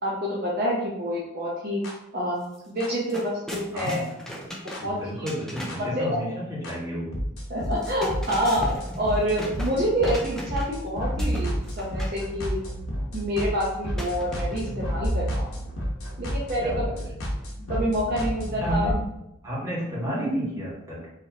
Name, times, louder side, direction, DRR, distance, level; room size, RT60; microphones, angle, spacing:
voice 1, 0.0-1.8 2.1-4.0 4.8-5.0 6.0-6.1 7.5-12.6 13.1-15.5 16.2-16.6 17.7-18.9, equal, 45° right, -5 dB, 0.7 m, -27 dB
sound 1, 1.8-1.9 2.8-2.9 3.8-3.9 4.7-4.8 5.7-5.8 6.6-6.7 7.1-18.9, equal, 85° left, 1.0 m, -30 dB
sound 2, 2.4-2.6 2.8-6.0 7.6-10.8 11.2-12.2 14.0-14.9, equal, 5° left, 0.4 m, -38 dB
voice 2, 3.7-4.0 4.8-7.1 16.6-17.0 18.6-19.0 19.4-21.1, equal, 15° right, -9 dB, 1.5 m, -31 dB
4.8 x 3.1 x 2.8 m, 0.86 s
head